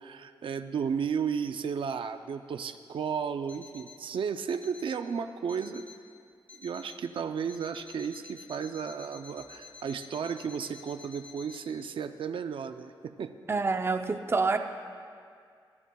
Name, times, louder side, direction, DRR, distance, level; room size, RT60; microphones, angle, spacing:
voice 1, 0.0-5.9 6.6-13.3, right 6 dB, 85° right, 9 dB, 0.5 m, -34 dB
Alarm, 3.5-4.1 4.5-5.1 5.5-6.1 6.5-7.1 7.5-11.6, left 5 dB, 15° left, 0.9 m, -51 dB
voice 2, 13.5-14.6, right 4 dB, 30° right, 6 dB, 0.5 m, -27 dB
24.5 x 12.0 x 2.3 m, 2.2 s
wide cardioid pair, 150°, 9 cm